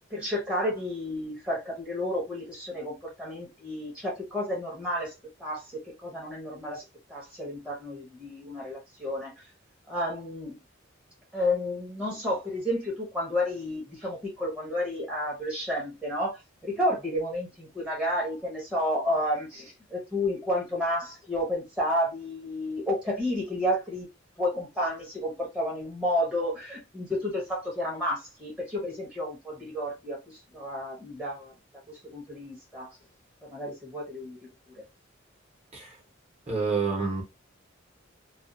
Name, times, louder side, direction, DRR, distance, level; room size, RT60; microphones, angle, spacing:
voice 1, 0.1-5.1 5.4-6.8 7.1-9.3 9.9-10.6 11.3-24.1 24.4-31.5 31.9-33.0 33.5-34.4 34.8-34.9, left 1 dB, 5° right, 0.9 m, -31 dB
voice 2, 36.5-37.2, right 4 dB, 35° right, 1.0 m, -28 dB
2.4 x 2.4 x 2.6 m
head